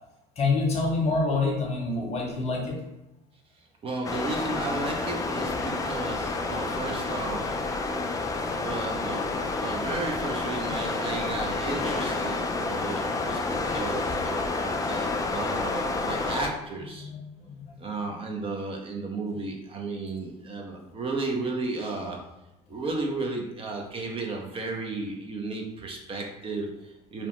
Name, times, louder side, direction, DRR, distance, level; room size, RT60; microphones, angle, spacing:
voice 1, 0.4-2.8 9.8-9.9 13.7-13.8 17.0-17.2 17.5-17.7, left 3 dB, 40° left, 0 dB, 0.8 m, -27 dB
voice 2, 3.8-7.7 8.5-17.1 17.8-22.2 22.7-27.3, right 3 dB, 30° right, 0 dB, 0.6 m, -34 dB
sound 1, 4.0-16.5, left 3 dB, 20° left, 0.4 m, -29 dB
2.8 x 2.0 x 3.0 m, 0.93 s
supercardioid pair, 85°, 17 cm